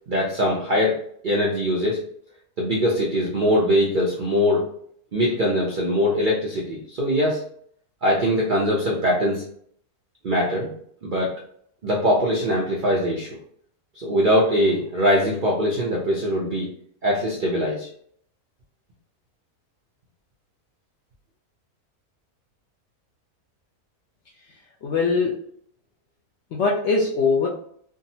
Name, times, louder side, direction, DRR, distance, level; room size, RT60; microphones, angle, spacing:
voice 1, 0.1-1.0 1.2-2.0 2.6-4.7 5.1-7.4 8.0-9.4 10.2-10.7 11.0-11.3 11.8-13.3 13.9-16.7 17.0-17.9, equal, 65° right, -4 dB, 0.5 m, -22 dB
voice 2, 24.8-25.4 26.5-27.5, left 4 dB, 70° left, -2 dB, 0.7 m, -21 dB
3.5 x 2.0 x 2.6 m, 0.63 s
omnidirectional pair, 1.6 m